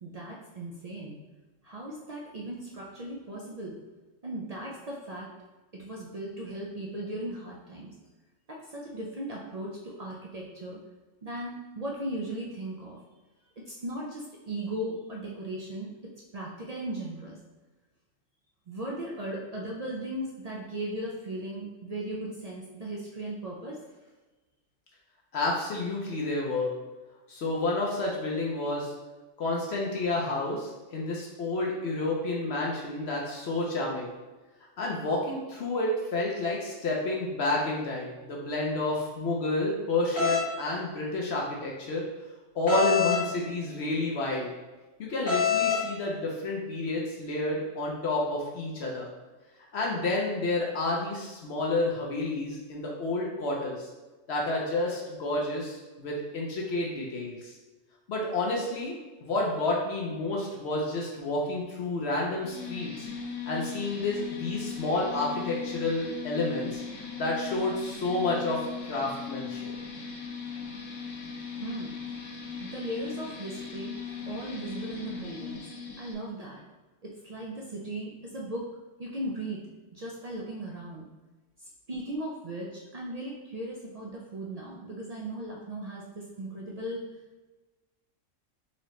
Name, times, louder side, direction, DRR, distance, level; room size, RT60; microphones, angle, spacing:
voice 1, 0.0-1.2 1.6-3.8 4.2-5.3 5.7-7.9 8.5-10.8 11.2-13.0 13.7-15.9 16.3-17.4 18.7-23.8 71.6-71.9 72.2-74.0 74.3-75.6 76.0-76.6 77.2-78.7 79.0-79.6 79.9-81.1 81.9-87.1, right 1 dB, 60° right, -4 dB, 0.4 m, -37 dB
voice 2, 25.3-26.7 27.3-28.9 29.4-34.1 34.8-42.0 42.5-44.5 45.0-49.1 49.7-53.9 54.3-57.5 58.1-63.1 63.5-66.8 67.2-69.7, left 2 dB, 60° left, -2 dB, 0.9 m, -30 dB
sound 1, 40.2-40.4 42.7-43.2 45.3-45.8, left 6 dB, 45° left, 1.2 m, -25 dB
sound 2, 62.4-76.1, left 6 dB, 85° left, 1.1 m, -38 dB
4.1 x 2.9 x 3.1 m, 1.2 s
omnidirectional pair, 1.3 m